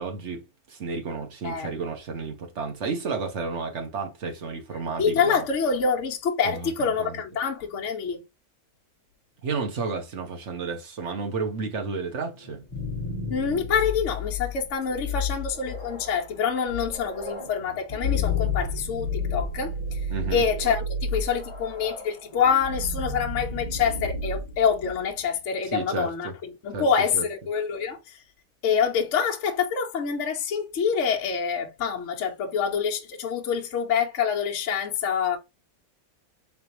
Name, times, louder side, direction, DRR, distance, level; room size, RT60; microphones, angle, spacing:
voice 1, 0.0-5.4 6.4-7.2 9.4-12.6 20.1-20.4 25.7-26.3 26.7-26.9 27.1-27.2, right 4 dB, 55° right, 1.3 m, -32 dB
voice 2, 5.0-8.2 13.3-20.0 20.3-26.3 26.6-28.2 28.6-35.4, left 6 dB, 60° left, 1.0 m, -26 dB
sound 1, 12.4-25.3, left 3 dB, 25° left, 1.1 m, -31 dB
3.8 x 3.3 x 2.8 m
omnidirectional pair, 1.5 m